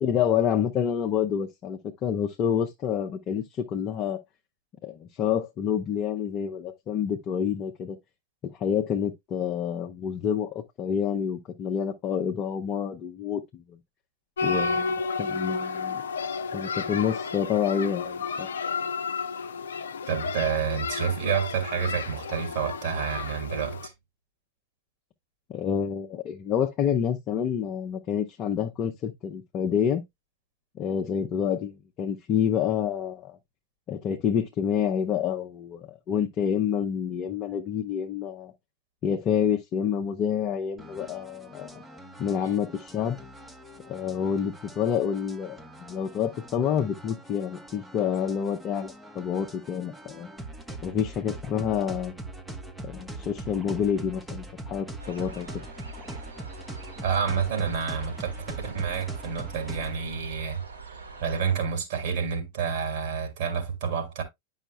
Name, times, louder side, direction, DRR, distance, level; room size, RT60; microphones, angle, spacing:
voice 1, 0.0-4.2 4.8-8.0 8.4-13.8 14.4-16.0 16.5-18.5 25.5-30.0 30.8-33.4 33.9-38.5 39.0-41.8 42.2-43.2 43.9-50.3 50.8-52.2 52.8-55.6, left 8 dB, 35° left, 0.7 m, -28 dB
sound 1, 14.4-23.9, left 4 dB, 65° left, 0.6 m, -32 dB
voice 2, 20.1-23.9 57.0-60.6 61.2-64.2, right 7 dB, 55° right, 2.6 m, -29 dB
sound 2, 40.8-60.0, right 2 dB, 5° right, 0.9 m, -42 dB
sound 3, 55.0-61.5, right 3 dB, 75° right, 3.7 m, -44 dB
10.0 x 5.6 x 2.2 m
figure-of-eight pair, 90°, 0 cm